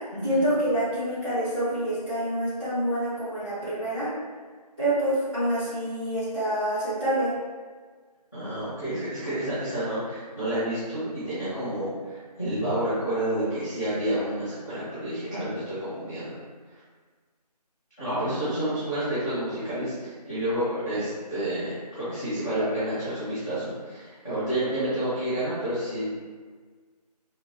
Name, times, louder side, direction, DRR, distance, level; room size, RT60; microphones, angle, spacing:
voice 1, 0.2-4.1 4.8-7.3, right 1 dB, ahead, -20 dB, 1.1 m, -27 dB
voice 2, 8.3-16.3 16.7-16.8 18.0-26.0, right 1 dB, 25° left, -17 dB, 0.8 m, -29 dB
2.7 x 2.6 x 2.9 m, 1.5 s
figure-of-eight pair, 175°, 21 cm